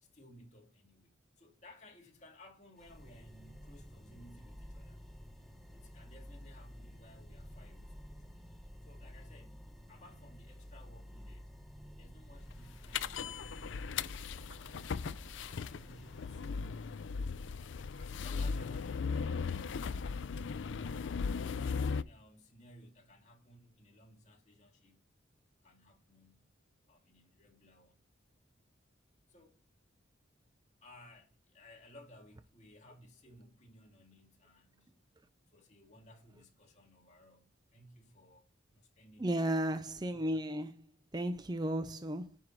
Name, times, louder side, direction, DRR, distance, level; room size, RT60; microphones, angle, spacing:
voice 1, 0.0-5.0 5.7-8.5 8.8-11.5 12.0-15.0 15.4-20.0 21.5-25.1 25.6-26.5 26.9-28.0 29.3-29.6 30.8-35.0 35.5-39.6, left 1 dB, 35° left, 2.3 m, -59 dB
sound 1, 2.8-16.5, equal, ahead, 1.0 m, -51 dB
sound 2, 12.9-22.0, left 5 dB, 70° left, 0.4 m, -37 dB
voice 2, 39.2-40.9 41.1-42.4, right 1 dB, 20° right, 0.5 m, -34 dB
9.9 x 5.6 x 4.6 m
head